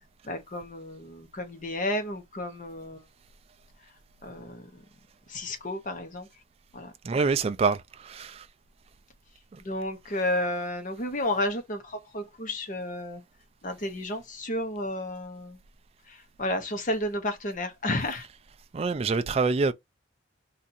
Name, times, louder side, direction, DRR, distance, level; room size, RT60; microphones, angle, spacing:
voice 1, 0.2-3.0 4.2-4.8 5.3-6.3 6.7-6.9 9.6-13.2 13.6-15.6 16.1-18.3, left 1 dB, 40° left, 0.8 m, -32 dB
voice 2, 7.0-8.5 9.5-9.6 18.0-18.1 18.7-19.7, right 4 dB, 30° right, 0.3 m, -26 dB
2.7 x 2.5 x 4.1 m
head